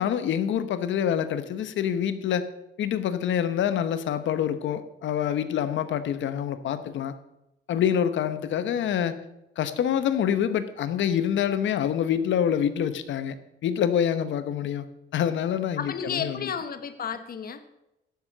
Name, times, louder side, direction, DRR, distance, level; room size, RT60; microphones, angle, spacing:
voice 1, 0.0-2.4 2.8-7.1 7.7-9.2 9.6-13.4 13.6-14.8 15.1-16.4, left 9 dB, 70° left, 12 dB, 1.0 m, -26 dB
voice 2, 15.8-17.6, left 7 dB, 50° left, 10 dB, 1.1 m, -32 dB
10.5 x 7.6 x 6.5 m, 0.90 s
cardioid pair, 90°, 20 cm